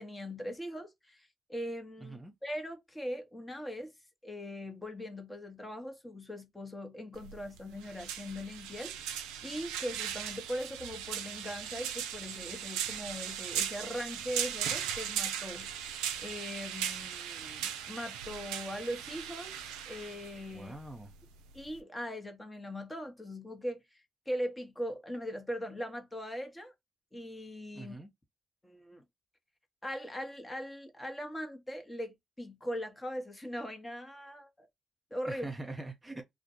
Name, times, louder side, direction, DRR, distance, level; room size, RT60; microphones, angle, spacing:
voice 1, 0.0-3.9 4.2-9.1 9.4-15.9 16.2-20.7 21.5-26.7 27.1-27.9 28.6-29.0 29.8-34.7 35.1-35.5, equal, 20° left, 1.0 m, -40 dB
voice 2, 2.0-2.3 20.5-21.1 27.7-28.1 35.3-36.2, right 2 dB, 20° right, 0.7 m, -43 dB
sound 1, 7.1-21.8, right 9 dB, 80° right, 0.3 m, -38 dB
2.4 x 2.2 x 2.7 m
hypercardioid pair, 45°, 0 cm